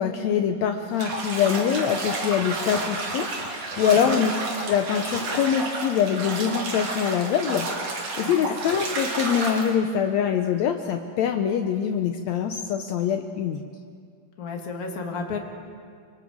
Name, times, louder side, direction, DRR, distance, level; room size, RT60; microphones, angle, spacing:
voice 1, 0.0-4.3 4.7-13.6, left 8 dB, 85° left, 5 dB, 1.5 m, -24 dB
Bathtub (filling or washing), 0.9-9.7, right 2 dB, 50° right, 3.5 m, -31 dB
voice 2, 3.8-4.2 8.2-8.6 14.4-15.4, left 4 dB, 35° left, 2 dB, 1.4 m, -33 dB
29.5 x 24.5 x 3.7 m, 2.2 s
omnidirectional pair, 4.2 m